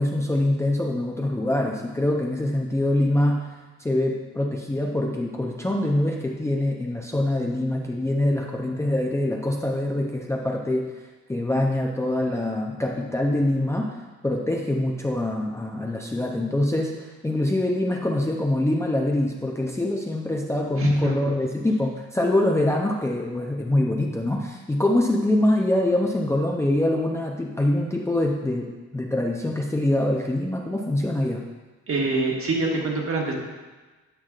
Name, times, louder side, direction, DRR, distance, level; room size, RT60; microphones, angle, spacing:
voice 1, 0.0-3.5 3.8-10.9 11.3-31.4, left 1 dB, 10° left, -1 dB, 0.6 m, -24 dB
voice 2, 20.8-21.1 31.9-33.3, right 3 dB, 45° right, -1 dB, 1.5 m, -25 dB
8.9 x 5.7 x 2.4 m, 1.3 s
cardioid pair, 90°, 30 cm